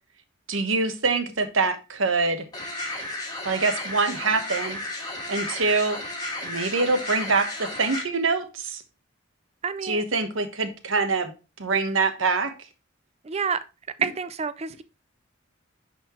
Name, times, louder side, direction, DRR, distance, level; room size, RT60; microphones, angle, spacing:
voice 1, 0.5-2.5 3.4-4.8 5.3-6.0 6.4-8.8 9.8-11.3 11.6-12.5, right 4 dB, 85° right, 1.1 m, -24 dB
sound 1, 2.5-8.0, left 1 dB, 20° left, 1.9 m, -33 dB
voice 2, 9.6-10.0 13.2-13.6 14.0-14.8, right 6 dB, 30° right, 0.5 m, -28 dB
10.5 x 4.3 x 3.0 m
head